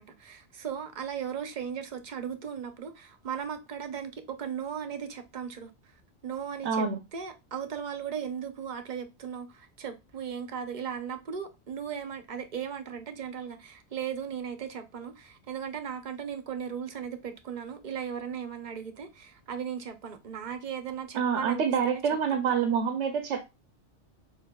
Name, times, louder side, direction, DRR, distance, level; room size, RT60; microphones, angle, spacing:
voice 1, 0.0-5.7 6.2-6.9 7.1-22.0, right 7 dB, 50° right, 0.7 m, -37 dB
voice 2, 6.6-7.0 21.2-23.5, right 6 dB, 80° right, 0.9 m, -27 dB
6.5 x 2.6 x 2.2 m
omnidirectional pair, 1.2 m